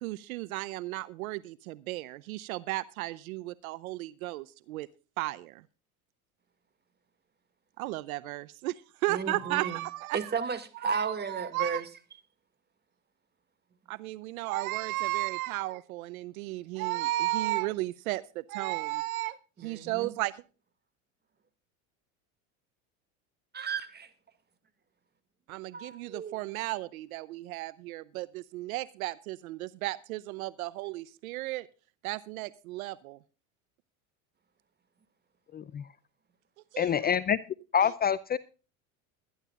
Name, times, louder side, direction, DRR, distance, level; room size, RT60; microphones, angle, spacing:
voice 1, 0.0-4.9 5.2-5.6 7.8-10.3 10.8-11.8 13.9-20.4 25.5-31.7 32.0-33.2 36.7-37.0 37.8-37.9, right 18 dB, 75° right, 0.8 m, -34 dB
voice 2, 9.1-9.8 10.1-11.9 19.6-20.1 23.5-24.1 25.7-26.4, right 5 dB, 25° right, 2.1 m, -34 dB
voice 3, 35.5-35.8 36.8-37.4 37.7-38.4, left 8 dB, 25° left, 0.5 m, -26 dB
21.5 x 11.0 x 2.4 m
hypercardioid pair, 95°, 43 cm